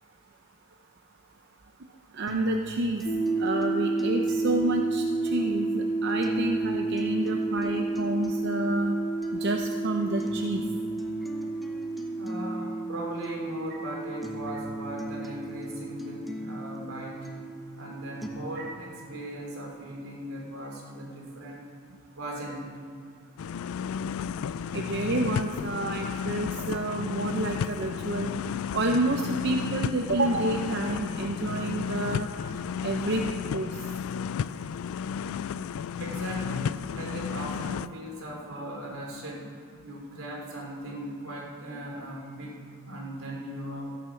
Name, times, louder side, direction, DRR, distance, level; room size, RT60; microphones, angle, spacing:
voice 1, 2.1-3.0 3.4-9.0 9.3-10.6 18.6-18.7 24.7-28.3 28.7-32.3 32.8-33.7, right 2 dB, 55° right, 3 dB, 0.7 m, -29 dB
sound 1, 2.3-18.3, left 1 dB, ahead, 1.0 m, -41 dB
sound 2, 3.1-18.6, right 3 dB, 25° left, 1.0 m, -31 dB
voice 2, 12.2-17.4 17.8-21.6 22.1-22.7 29.6-29.7 36.0-39.5 39.8-42.6 42.9-44.0, right 1 dB, 80° right, -1 dB, 3.1 m, -38 dB
sound 3, 23.4-37.9, left 7 dB, 75° left, 0.3 m, -33 dB
15.0 x 9.2 x 5.8 m, 2.3 s
head